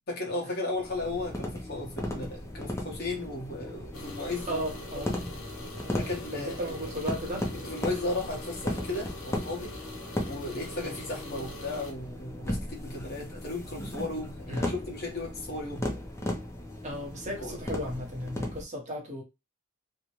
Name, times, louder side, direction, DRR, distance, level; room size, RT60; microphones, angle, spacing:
voice 1, 0.1-4.7 4.9-5.1 5.9-6.7 7.5-9.7 10.2-15.9 17.4-17.6, left 2 dB, 50° left, 1.0 m, -35 dB
sound 1, 0.7-18.6, left 1 dB, 15° left, 0.5 m, -37 dB
sound 2, 3.9-11.9, left 1 dB, 85° left, 1.0 m, -44 dB
voice 2, 4.5-5.1 5.8-6.0 6.3-7.5 10.8-11.0 14.5-14.7 16.8-19.2, equal, 35° right, 0.9 m, -35 dB
2.7 x 2.1 x 3.0 m
head